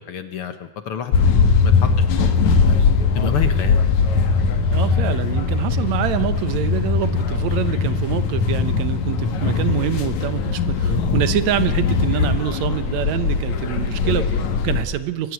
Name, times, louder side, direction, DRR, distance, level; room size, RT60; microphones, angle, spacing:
voice 1, 0.1-1.3 1.6-2.8 3.2-3.8, left 8 dB, 55° left, 10 dB, 1.8 m, -29 dB
sound 1, 1.1-14.8, left 5 dB, 75° left, 2.9 m, -20 dB
voice 2, 4.7-15.3, right 11 dB, 75° right, 13 dB, 2.1 m, -26 dB
22.5 x 15.5 x 9.6 m, 1.1 s
omnidirectional pair, 3.4 m